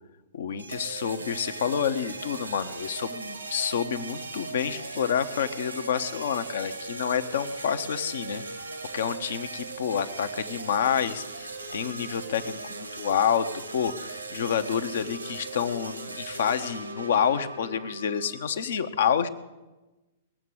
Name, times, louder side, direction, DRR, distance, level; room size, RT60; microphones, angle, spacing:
voice 1, 0.3-8.4 8.9-13.5 13.7-19.3, left 8 dB, 65° left, 11 dB, 0.9 m, -28 dB
sound 1, 0.6-18.5, right 3 dB, 90° right, 1.5 m, -39 dB
20.0 x 7.5 x 7.9 m, 1.1 s
figure-of-eight pair, 110°, 0 cm